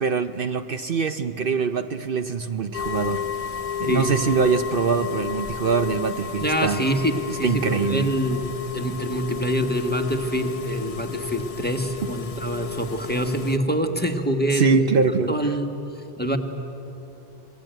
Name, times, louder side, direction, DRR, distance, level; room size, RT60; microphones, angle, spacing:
voice 1, 0.0-3.2 3.8-6.9 7.4-8.1 14.5-15.5, right 5 dB, 60° right, 9 dB, 0.9 m, -23 dB
sound 1, 2.7-13.6, left 7 dB, 40° left, 0.7 m, -32 dB
voice 2, 3.9-4.3 6.4-8.4 8.7-14.8 15.3-15.7 16.2-16.4, equal, 10° left, 5 dB, 1.6 m, -25 dB
27.5 x 21.5 x 9.1 m, 3.0 s
omnidirectional pair, 1.1 m